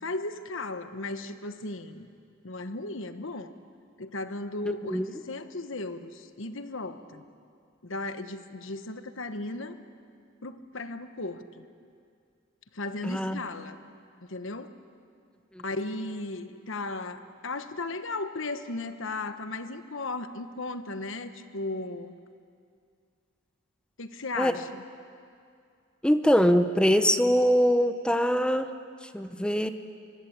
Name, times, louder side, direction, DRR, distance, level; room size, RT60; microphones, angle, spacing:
voice 1, 0.0-2.1 2.4-3.5 4.0-7.2 7.8-9.8 10.4-11.6 12.7-13.8 14.3-14.7 15.6-22.1 24.0-24.8, left 2 dB, 65° left, 9 dB, 1.3 m, -36 dB
voice 2, 13.0-13.4 24.4-24.5 26.0-28.7 29.1-29.7, equal, 5° left, 9 dB, 0.8 m, -23 dB
24.5 x 22.5 x 8.8 m, 2.3 s
head